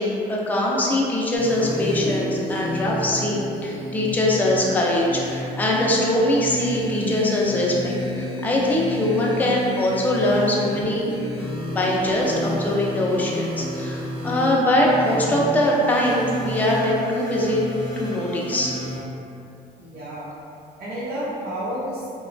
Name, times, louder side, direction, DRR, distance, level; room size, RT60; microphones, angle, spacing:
voice 1, 0.0-11.0 11.7-17.6 18.0-18.7, left 1 dB, 10° left, -4 dB, 0.4 m, -22 dB
sound 1, 1.4-19.0, left 1 dB, 30° right, 0.9 m, -30 dB
voice 2, 19.8-20.3 20.8-22.1, equal, 75° right, -10 dB, 0.7 m, -30 dB
2.9 x 2.2 x 2.5 m, 2.6 s
cardioid pair, 110°, 17 cm